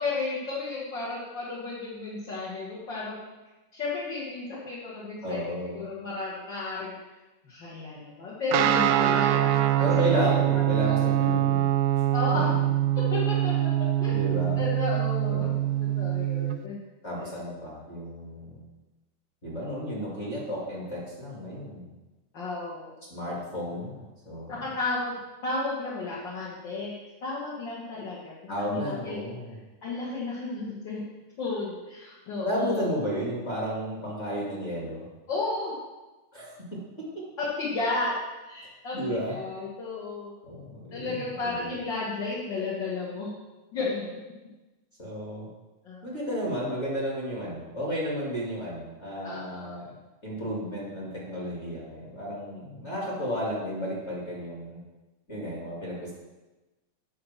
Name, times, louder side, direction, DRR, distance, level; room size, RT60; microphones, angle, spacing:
voice 1, 0.0-3.2 3.7-5.4 5.7-7.0 7.5-9.7 10.1-10.2 10.8-11.0 12.1-12.5 13.1-13.7 14.0-14.2 14.6-15.5 15.8-16.8 22.3-22.9 24.5-25.2 25.4-26.9 27.2-28.3 28.6-29.2 29.8-31.0 31.4-32.9 35.3-35.7 37.4-38.1 38.5-40.3 40.9-43.3 43.7-44.1 45.8-46.0 49.2-49.8, left 3 dB, 45° left, -7 dB, 1.9 m, -33 dB
voice 2, 5.2-5.8 9.8-11.7 14.1-14.6 15.3-15.6 17.0-18.7 19.4-21.9 23.1-24.5 28.5-29.6 32.4-35.1 36.3-36.5 37.0-37.2 38.9-39.4 40.4-41.7 45.0-45.5 46.0-49.9 50.2-54.8 55.3-56.1, equal, 25° left, -5 dB, 2.0 m, -33 dB
Guitar, 8.5-16.6, right 13 dB, 80° right, 2.0 m, -24 dB
8.4 x 5.0 x 7.2 m, 1.1 s
omnidirectional pair, 3.6 m